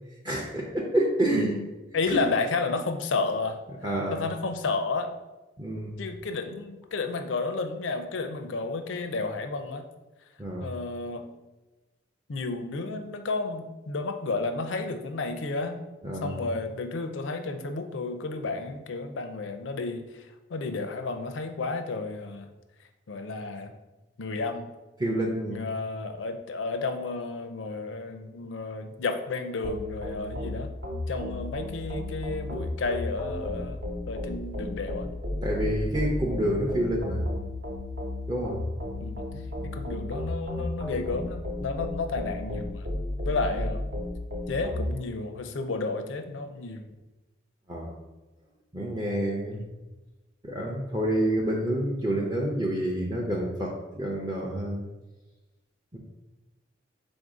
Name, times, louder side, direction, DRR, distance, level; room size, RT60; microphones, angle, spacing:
voice 1, 0.2-1.6 2.1-2.2 3.8-4.2 5.6-6.0 10.4-10.7 16.0-16.3 25.0-25.6 35.4-37.2 38.3-38.6 39.6-39.7 47.7-48.0 48.7-49.6 50.4-54.8 55.9-56.0, right 1 dB, 20° right, -3 dB, 0.5 m, -28 dB
voice 2, 1.3-3.6 4.1-5.2 6.0-9.8 10.6-11.3 12.3-15.8 16.2-20.1 20.5-22.5 23.1-23.7 24.2-24.7 25.5-30.7 31.1-33.8 34.1-35.1 36.5-36.7 39.0-39.2 39.7-42.9 43.2-43.8 44.5-46.9 49.5-49.8, left 3 dB, 85° left, 6 dB, 0.5 m, -32 dB
sound 1, 29.6-44.9, left 1 dB, 60° right, 0.9 m, -33 dB
3.9 x 2.6 x 4.8 m, 1.1 s
head